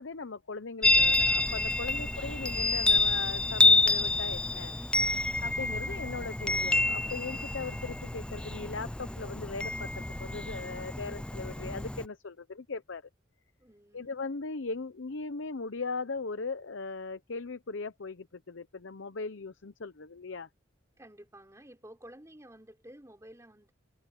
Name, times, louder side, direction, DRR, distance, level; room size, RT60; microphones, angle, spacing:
voice 1, 0.0-4.8 5.4-13.0 13.9-20.5, left 4 dB, 70° left, 0.8 m, -39 dB
Chime, 0.8-12.0, left 2 dB, 5° left, 0.3 m, -28 dB
voice 2, 5.3-5.9 13.6-14.2 21.0-23.7, right 1 dB, 15° right, 4.1 m, -54 dB
head